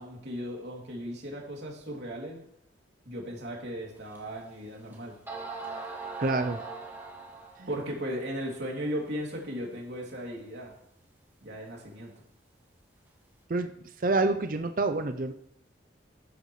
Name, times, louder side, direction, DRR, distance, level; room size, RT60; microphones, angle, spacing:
voice 1, 0.0-2.4 3.0-5.2 7.7-10.7 11.4-12.2, equal, 70° right, -1 dB, 2.8 m, -36 dB
sound 1, 4.1-4.2 4.9-5.0 5.3-7.7, right 3 dB, 10° right, 2.2 m, -39 dB
voice 2, 6.2-6.6 7.6-7.7 13.5-13.7 14.0-15.3, right 3 dB, 45° right, 8 dB, 0.6 m, -27 dB
14.5 x 9.5 x 3.2 m, 0.75 s
head